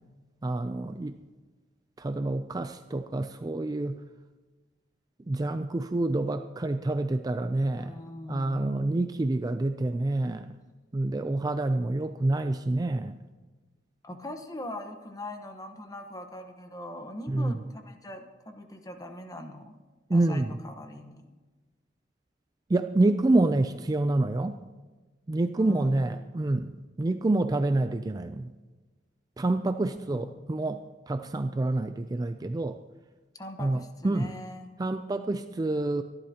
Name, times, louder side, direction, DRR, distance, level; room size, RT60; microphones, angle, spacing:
voice 1, 0.4-1.2 2.0-4.0 5.3-8.0 8.3-10.5 10.9-13.2 17.3-17.5 20.1-20.5 22.7-24.6 25.3-28.5 29.4-32.8 33.6-34.3 34.8-36.0, right 2 dB, 20° right, 9 dB, 0.4 m, -27 dB
voice 2, 7.7-8.8 14.0-19.8 20.1-21.3 25.6-26.2 30.1-30.4 33.3-34.7, left 1 dB, 20° left, 6 dB, 1.1 m, -41 dB
24.0 x 12.0 x 2.9 m, 1.3 s
head